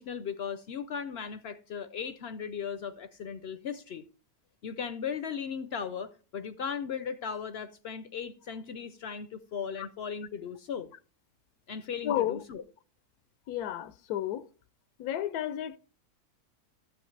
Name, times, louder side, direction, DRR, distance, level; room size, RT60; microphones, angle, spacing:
voice 1, 0.0-4.0 4.6-10.9 11.7-12.6, left 6 dB, 65° left, 0.6 m, -37 dB
voice 2, 12.0-12.4 13.5-14.4 15.0-15.8, left 12 dB, 90° left, 1.1 m, -32 dB
12.5 x 7.8 x 3.2 m
omnidirectional pair, 1.6 m